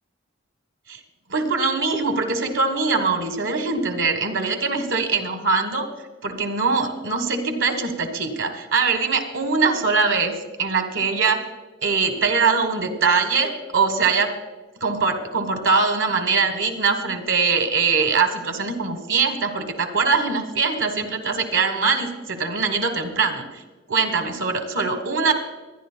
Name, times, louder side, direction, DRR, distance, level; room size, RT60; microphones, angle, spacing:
voice 1, 1.3-5.9 6.2-11.5 11.8-14.3 14.8-23.4 23.9-25.3, right 4 dB, 65° right, 6 dB, 1.4 m, -22 dB
25.0 x 10.5 x 2.2 m, 1.2 s
head